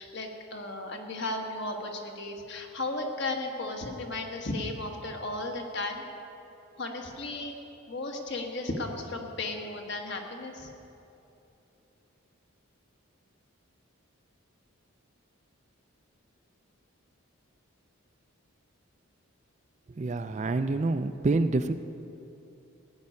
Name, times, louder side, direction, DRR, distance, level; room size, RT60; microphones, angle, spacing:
voice 1, 0.0-6.0 6.8-7.5 7.9-10.7, left 2 dB, 50° left, 2 dB, 1.4 m, -35 dB
voice 2, 20.0-21.7, right 3 dB, 30° right, 10 dB, 0.3 m, -27 dB
16.0 x 5.4 x 9.7 m, 2.9 s
head